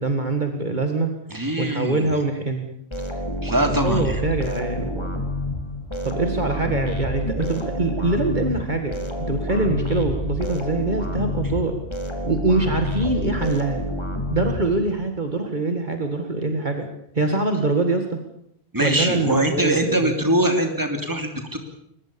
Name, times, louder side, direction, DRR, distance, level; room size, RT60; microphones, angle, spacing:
voice 1, 0.0-1.1 1.6-2.7 3.6-5.1 6.0-11.7 12.2-13.8 14.3-16.9 17.1-18.2 18.8-20.1, right 3 dB, 45° right, 5 dB, 2.1 m, -24 dB
voice 2, 1.3-2.1 3.4-4.2 18.7-21.6, right 1 dB, 20° right, 5 dB, 3.0 m, -22 dB
sound 1, 2.9-15.1, left 1 dB, 25° left, 3.0 m, -28 dB
22.5 x 21.0 x 7.0 m, 0.71 s
omnidirectional pair, 1.1 m